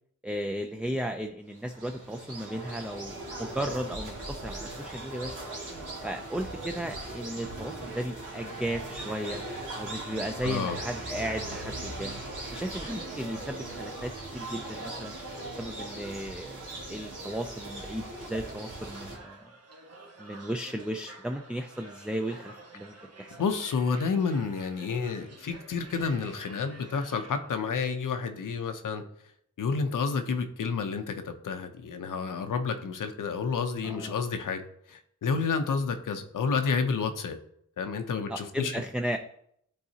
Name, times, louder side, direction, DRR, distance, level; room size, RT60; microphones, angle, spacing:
voice 1, 0.2-5.4 6.0-9.4 9.7-12.2 12.5-15.2 15.6-19.5 20.2-23.4 33.8-34.1 38.3-39.2, right 1 dB, 5° right, 5 dB, 0.3 m, -35 dB
sound 1, 1.5-19.2, right 2 dB, 85° right, 1.7 m, -39 dB
voice 2, 10.4-10.8 23.4-29.0 29.6-34.6 34.9-37.4 37.8-38.8, left 5 dB, 90° left, 7 dB, 0.6 m, -30 dB
sound 2, 18.8-27.6, right 2 dB, 50° right, 1.0 m, -50 dB
10.5 x 4.0 x 2.8 m, 0.71 s
wide cardioid pair, 80°, 31 cm